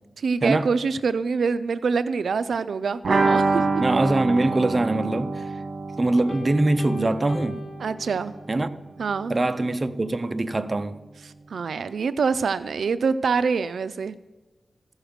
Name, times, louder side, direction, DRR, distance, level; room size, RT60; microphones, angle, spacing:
voice 1, 0.2-3.6 7.8-8.3 9.0-9.3 11.5-14.2, right 5 dB, 85° right, 0.3 m, -25 dB
Clean G Chord, 3.0-8.7 8.9-9.0 9.3-9.4, right 3 dB, 65° right, 1.4 m, -26 dB
voice 2, 3.8-5.5 6.0-7.6 8.5-8.7 9.3-11.0, right 2 dB, 30° right, 0.6 m, -23 dB
Piano, 6.3-8.7, left 2 dB, 55° left, 1.3 m, -40 dB
15.0 x 6.4 x 5.0 m
wide cardioid pair, 95°, 0 cm